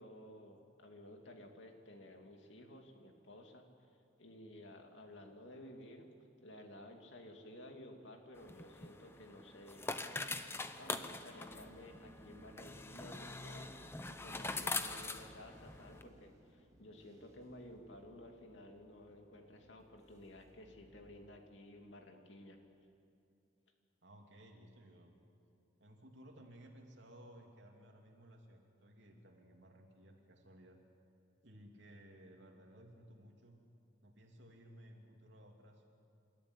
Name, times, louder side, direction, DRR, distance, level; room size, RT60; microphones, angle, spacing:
voice 1, 0.0-3.9 4.2-6.1 6.4-9.9 10.8-13.7 14.0-22.6, left 1 dB, 75° left, 3 dB, 2.5 m, -54 dB
sound 1, 8.3-16.0, left 3 dB, 15° left, 0.7 m, -43 dB
sound 2, 11.5-21.4, equal, 15° right, 2.2 m, -62 dB
voice 2, 24.0-25.1 25.8-30.8 31.4-33.6 34.0-35.9, right 1 dB, 70° right, 1 dB, 3.2 m, -58 dB
27.5 x 13.5 x 9.9 m, 2.5 s
head